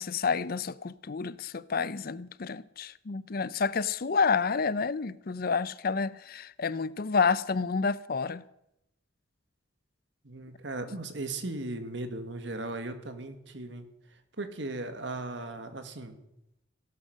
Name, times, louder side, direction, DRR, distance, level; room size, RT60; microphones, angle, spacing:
voice 1, 0.0-8.4, left 5 dB, 50° left, 0.6 m, -29 dB
voice 2, 10.3-13.9 14.4-16.2, right 2 dB, 65° right, 1.9 m, -37 dB
16.5 x 12.0 x 6.4 m
head